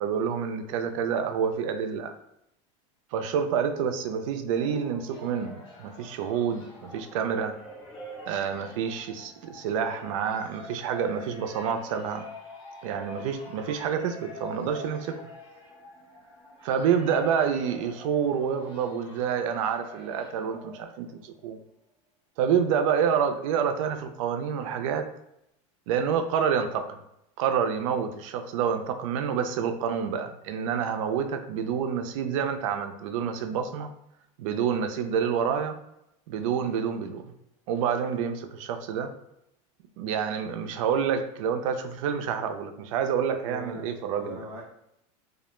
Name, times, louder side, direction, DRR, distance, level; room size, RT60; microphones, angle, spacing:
voice 1, 0.0-2.1 3.1-7.6 8.3-12.2 12.8-15.2 16.6-21.6 22.4-25.1 25.9-27.0 27.4-33.9 34.4-35.8 36.3-37.2 37.7-39.1 40.0-44.4, right 7 dB, 80° right, 7 dB, 0.4 m, -28 dB
sound 1, 4.3-21.2, left 1 dB, 30° left, 0.9 m, -46 dB
voice 2, 43.4-44.6, equal, 15° right, -8 dB, 0.7 m, -41 dB
2.3 x 2.0 x 3.0 m, 0.80 s
supercardioid pair, 140°, 17 cm